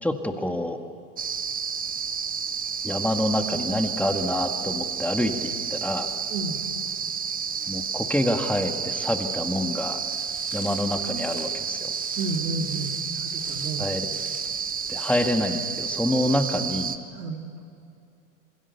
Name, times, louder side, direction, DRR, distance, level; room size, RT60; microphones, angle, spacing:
voice 1, 0.0-0.8 2.8-6.1 7.7-10.0 10.5-11.9 13.8-14.1 14.9-17.0, left 1 dB, 5° left, 6 dB, 2.0 m, -27 dB
sound 1, 1.2-17.0, right 6 dB, 20° right, 1.1 m, -31 dB
voice 2, 6.3-6.6 12.2-13.9 17.1-17.4, right 3 dB, 80° right, 3 dB, 3.5 m, -31 dB
Walk footsteps, 10.1-15.6, left 7 dB, 75° left, 4.3 m, -47 dB
27.5 x 21.5 x 6.9 m, 2.4 s
hypercardioid pair, 105°, 44 cm